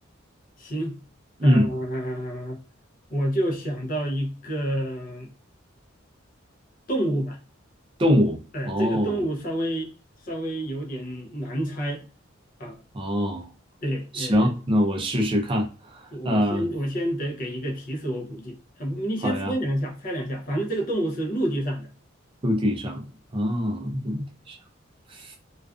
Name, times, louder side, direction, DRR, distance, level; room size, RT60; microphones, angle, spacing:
voice 1, 0.6-1.0 1.4-2.6 3.1-5.3 6.9-7.4 8.5-9.9 10.2-12.0 12.6-12.8 13.8-14.5 16.1-21.9, right 1 dB, 45° left, 0.6 m, -28 dB
voice 2, 8.0-8.4 8.6-9.2 12.9-13.5 14.1-16.7 19.2-19.5 22.4-23.0 23.3-24.6 25.1-25.4, equal, 25° right, 0.4 m, -24 dB
2.4 x 2.3 x 2.3 m
head